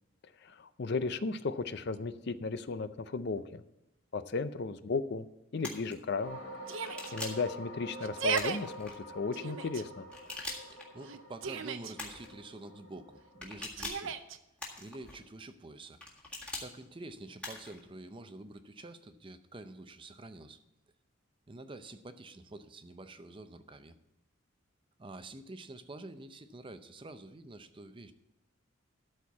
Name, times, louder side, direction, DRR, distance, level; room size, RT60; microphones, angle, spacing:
voice 1, 0.4-3.6 4.1-5.3 5.5-6.4 7.1-10.1, left 4 dB, 55° left, 12 dB, 0.5 m, -35 dB
sound 1, 5.6-5.9 6.8-7.5 8.3-8.9 10.1-10.9 12.0-12.3 13.4-14.1 14.6-15.2 16.0-16.7 17.4-17.8, left 2 dB, 5° left, 1.7 m, -42 dB
sound 2, 6.2-13.6, right 1 dB, 75° left, 1.8 m, -48 dB
Yell, 6.7-7.1 8.0-8.6 9.3-9.8 11.0-11.9 13.8-14.4, right 6 dB, 65° right, 0.6 m, -35 dB
voice 2, 10.7-14.2 14.8-16.0 16.6-20.6 21.5-24.0 25.0-28.1, right 2 dB, 25° right, 10 dB, 0.5 m, -48 dB
13.0 x 4.4 x 8.2 m, 0.88 s
head